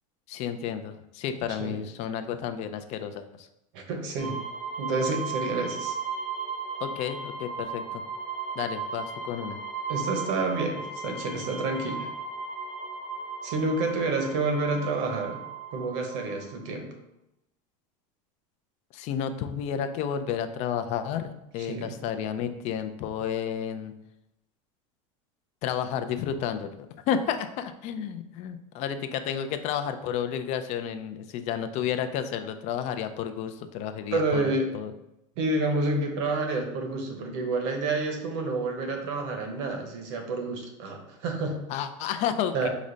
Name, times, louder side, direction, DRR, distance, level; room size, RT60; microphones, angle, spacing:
voice 1, 0.3-3.5 6.8-8.0 8.6-9.6 18.9-23.9 25.6-26.7 27.1-34.9 41.7-42.7, left 8 dB, 40° left, 9 dB, 0.4 m, -31 dB
voice 2, 3.7-4.4 4.8-5.9 9.9-12.1 13.4-15.4 15.7-16.9 21.7-21.9 34.1-34.7 35.4-41.6 42.5-42.7, right 3 dB, 60° right, 4 dB, 0.9 m, -29 dB
sound 1, 4.2-16.6, right 5 dB, 85° left, 1.0 m, -36 dB
4.9 x 2.1 x 3.8 m, 0.85 s
supercardioid pair, 145°, 17 cm